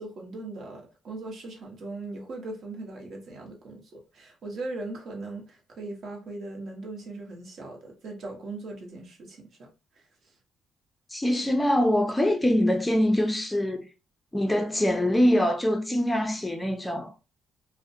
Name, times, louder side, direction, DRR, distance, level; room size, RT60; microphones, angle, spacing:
voice 1, 0.0-9.7 9.9-10.0, right 2 dB, 60° right, 0.8 m, -39 dB
voice 2, 11.1-13.8 14.3-17.1, left 1 dB, 10° left, 0.5 m, -24 dB
2.5 x 2.1 x 2.6 m
cardioid pair, 95°, 0 cm